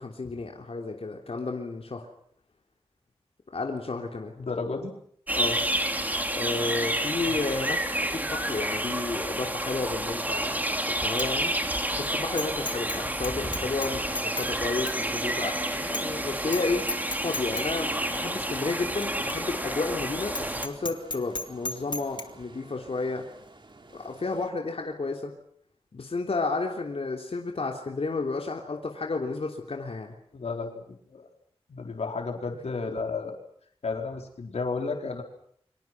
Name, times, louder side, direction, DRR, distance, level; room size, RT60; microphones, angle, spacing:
voice 1, 0.0-2.1 3.5-4.3 5.3-5.6 6.3-7.8 8.1-11.5 11.9-16.8 17.2-23.2 23.9-25.3 25.9-30.1, left 3 dB, 65° left, 1 dB, 3.3 m, -32 dB
voice 2, 4.4-4.9 7.2-7.4 30.3-31.2 31.7-33.3 33.8-35.2, left 4 dB, 90° left, 2 dB, 4.5 m, -32 dB
sound 1, 5.3-20.7, right 1 dB, 15° right, 3.3 m, -30 dB
Bicycle bell, 10.4-10.7 11.1-11.3 11.7-11.8 12.4-13.0 13.2-14.5 14.9-15.0 15.4-15.5 15.9-16.2 16.5-16.6 16.9-17.7 18.1-18.2 19.0-19.1 19.3-19.4 19.8-19.9 20.3-22.2, left 2 dB, 45° left, 2.5 m, -34 dB
sound 2, 13.8-24.5, right 2 dB, 50° right, 3.4 m, -49 dB
29.0 x 25.5 x 6.1 m, 0.65 s
wide cardioid pair, 65°, 11 cm